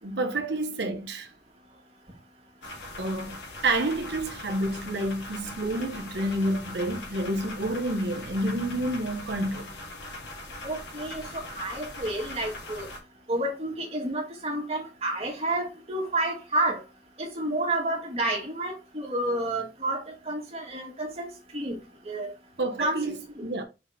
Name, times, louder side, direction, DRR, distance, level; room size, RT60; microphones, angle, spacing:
voice 1, 0.0-1.3 3.0-3.4 3.6-9.7 22.6-23.6, right 1 dB, 75° right, 1.0 m, -29 dB
sound 1, 2.6-13.0, left 2 dB, 90° left, 2.8 m, -41 dB
voice 2, 10.6-12.9 13.3-16.8 17.2-21.3 21.5-21.8 22.0-22.3 22.8-23.0, right 1 dB, 35° right, 2.1 m, -30 dB
5.8 x 4.2 x 4.1 m
head